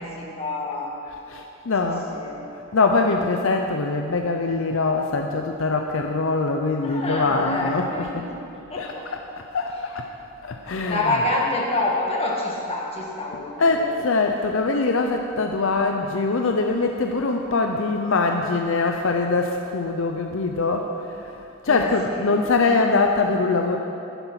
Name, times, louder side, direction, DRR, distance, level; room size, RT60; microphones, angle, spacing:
voice 1, 0.0-1.0 1.8-2.4 6.8-8.4 8.7-9.1 10.9-14.0 21.7-22.4, left 2 dB, 25° left, -2 dB, 1.7 m, -27 dB
voice 2, 1.1-2.1 2.7-8.3 8.8-9.2 9.5-10.0 10.4-11.2 13.6-23.8, left 3 dB, 65° left, 4 dB, 0.6 m, -23 dB
11.5 x 9.9 x 5.8 m, 2.8 s
head